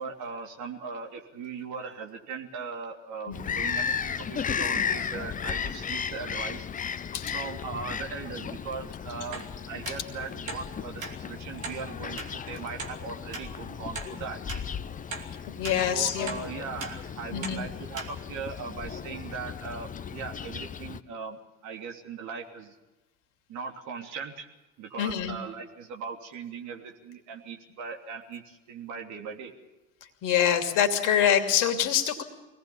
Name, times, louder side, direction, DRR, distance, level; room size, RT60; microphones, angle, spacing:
voice 1, 0.0-6.7 7.3-14.4 15.8-22.7 23.5-24.5 24.8-29.5, right 5 dB, 45° right, 2 dB, 3.2 m, -39 dB
Bird vocalization bird call bird song, 3.3-21.0, left 7 dB, 20° left, 0.8 m, -35 dB
sound 1, 9.3-9.5 9.8-10.0 10.5-10.6 11.0-11.1 11.6-11.8 12.2-12.3 12.8-12.9 13.3-13.5 14.0-14.1 14.5-14.6 15.1-15.3 15.6-15.8 16.3-16.4 16.8-16.9 17.4-17.6 18.0-18.1 18.6-18.7, right 4 dB, 80° right, 2.9 m, -37 dB
voice 2, 15.5-16.3 17.3-17.7 25.0-25.4 30.2-32.2, left 9 dB, 50° left, 6 dB, 2.8 m, -25 dB
24.5 x 18.5 x 7.1 m, 1.1 s
figure-of-eight pair, 65°, 39 cm